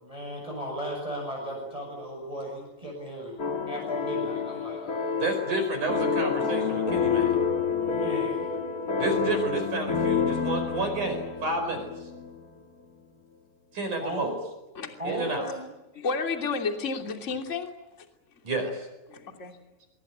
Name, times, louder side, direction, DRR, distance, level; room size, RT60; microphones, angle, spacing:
voice 1, 0.0-3.4 3.7-5.2 7.8-8.6 14.0-14.3 15.0-15.7, equal, 5° right, 0 dB, 7.0 m, -36 dB
sound 1, 3.4-12.4, left 5 dB, 80° left, 0.8 m, -28 dB
voice 2, 5.2-7.3 9.0-11.9 13.7-14.3 15.0-15.5 18.4-18.9, right 2 dB, 45° right, 6 dB, 6.1 m, -30 dB
voice 3, 15.9-17.7 19.1-19.5, left 4 dB, 20° left, 4 dB, 2.4 m, -31 dB
25.0 x 24.5 x 9.1 m, 1.0 s
omnidirectional pair, 5.2 m